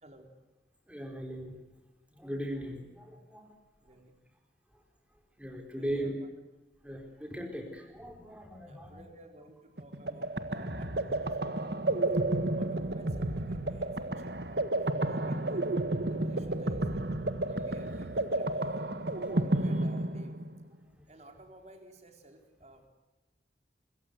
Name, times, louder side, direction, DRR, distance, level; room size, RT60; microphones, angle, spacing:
voice 1, 0.9-1.5 2.2-3.5 5.4-6.1 6.8-9.0 19.1-19.4, right 1 dB, 5° right, 4 dB, 4.2 m, -38 dB
voice 2, 3.8-4.2 5.7-6.3 8.7-11.8 12.6-15.7 16.0-18.7 19.3-20.4 21.1-22.9, right 1 dB, 35° right, 4 dB, 4.0 m, -55 dB
sound 1, 9.8-20.6, right 2 dB, 65° right, 1.6 m, -31 dB
25.5 x 23.0 x 8.1 m, 1.1 s
head